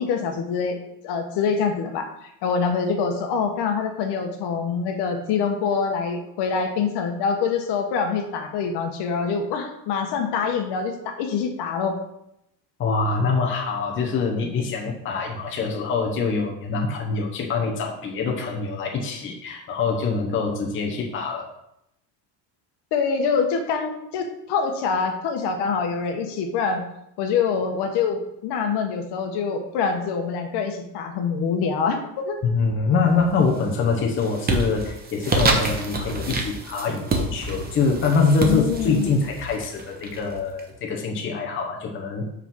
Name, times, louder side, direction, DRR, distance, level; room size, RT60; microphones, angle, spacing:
voice 1, 0.0-12.0 22.9-26.8 27.2-32.4 38.4-39.2, left 5 dB, 60° left, 4 dB, 1.2 m, -25 dB
voice 2, 12.8-21.5 32.4-42.2, left 4 dB, 25° left, 1 dB, 0.9 m, -24 dB
sound 1, 33.1-33.6 34.0-40.6, right 3 dB, 20° right, 0.8 m, -28 dB
5.5 x 4.9 x 6.0 m, 0.80 s
cardioid pair, 170°, 46 cm